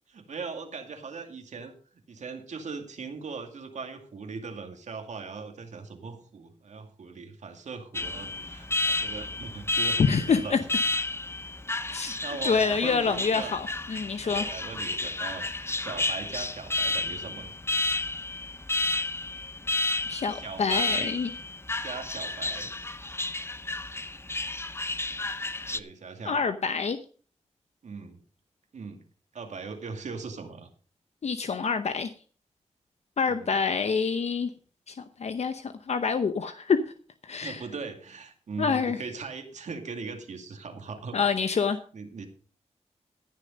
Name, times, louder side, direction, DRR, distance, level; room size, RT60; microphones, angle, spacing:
voice 1, 0.1-1.7 2.1-10.6 12.0-13.6 14.2-17.5 20.1-21.1 21.8-22.7 25.7-26.4 27.8-28.2 28.7-29.0 29.3-30.7 33.2-33.5 37.4-41.2 41.9-42.3, right 4 dB, 75° right, 5 dB, 2.3 m, -39 dB
Alarm, 7.9-25.8, left 2 dB, 20° left, 0.7 m, -31 dB
voice 2, 10.0-10.6 11.9-12.2 12.4-14.4 20.1-21.3 26.2-27.0 31.2-32.1 33.2-34.5 34.9-36.8 37.2-37.6 38.6-39.0 41.1-41.8, left 5 dB, 65° left, 9 dB, 0.8 m, -26 dB
15.0 x 6.8 x 5.2 m, 0.40 s
cardioid pair, 70°, 12 cm